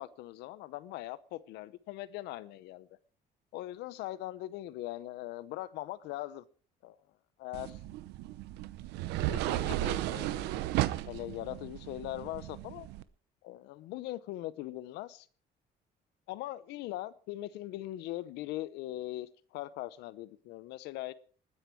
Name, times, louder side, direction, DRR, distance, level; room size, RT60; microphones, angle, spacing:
voice 1, 0.0-2.9 3.5-6.4 6.8-7.0 7.4-7.8 9.2-10.6 11.1-12.9 13.4-15.3 16.3-21.1, left 15 dB, 90° left, 0.8 m, -41 dB
sound 1, 7.5-13.0, right 15 dB, 90° right, 0.8 m, -34 dB
20.0 x 9.9 x 4.6 m
cardioid pair, 110°, 17 cm